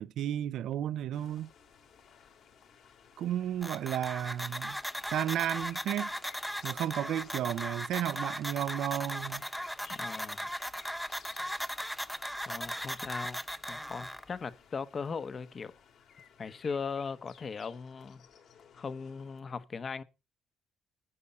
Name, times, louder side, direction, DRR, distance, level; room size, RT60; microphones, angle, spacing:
voice 1, 0.0-1.5 3.2-4.8 5.1-6.1 6.6-9.4, right 11 dB, 80° right, 0.5 m, -33 dB
sound 1, 1.1-19.4, left 7 dB, 70° left, 3.3 m, -58 dB
sound 2, 3.6-14.2, equal, ahead, 0.7 m, -38 dB
voice 2, 9.9-10.5 12.5-13.4 13.7-15.7 16.4-18.2 18.7-20.0, left 5 dB, 45° left, 1.0 m, -38 dB
9.7 x 8.5 x 5.4 m
cardioid pair, 90°, 0 cm